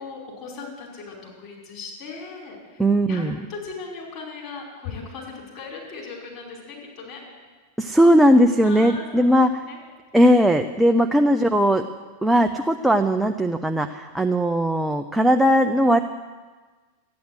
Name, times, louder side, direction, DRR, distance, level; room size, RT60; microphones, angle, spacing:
voice 1, 0.0-2.8 3.1-3.2 3.5-7.2 8.6-9.4 9.6-9.8 10.8-11.1, left 4 dB, 35° left, -3 dB, 5.0 m, -38 dB
voice 2, 2.8-3.4 7.8-9.5 10.1-11.8 12.2-16.0, equal, 5° right, 5 dB, 0.5 m, -18 dB
14.5 x 9.5 x 8.0 m, 1.4 s
figure-of-eight pair, 90°, 0 cm